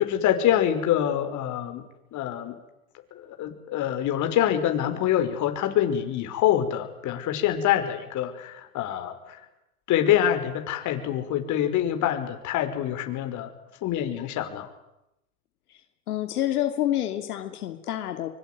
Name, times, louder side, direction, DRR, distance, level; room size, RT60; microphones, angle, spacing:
voice 1, 0.0-1.8 2.1-2.6 3.1-9.4 9.9-13.5 13.8-14.7, left 11 dB, 40° left, 6 dB, 5.7 m, -25 dB
voice 2, 16.1-18.3, left 12 dB, 80° left, 6 dB, 3.0 m, -28 dB
24.0 x 23.5 x 9.6 m, 0.89 s
hypercardioid pair, 115°, 44 cm